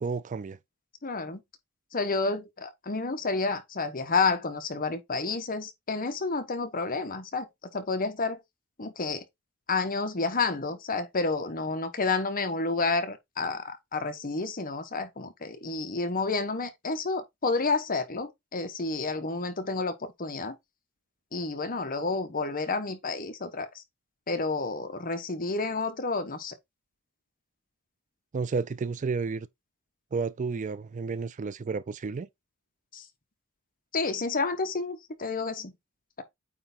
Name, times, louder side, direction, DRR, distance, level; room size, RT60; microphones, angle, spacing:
voice 1, 0.0-0.6 28.3-29.5 30.1-32.3, right 4 dB, 35° right, 0.4 m, -31 dB
voice 2, 1.0-1.4 1.9-8.4 8.8-9.2 9.7-19.9 20.2-20.5 21.3-23.8 24.3-26.5 32.9-33.0 33.9-35.7, left 3 dB, 40° left, 1.2 m, -30 dB
8.8 x 3.3 x 4.2 m
head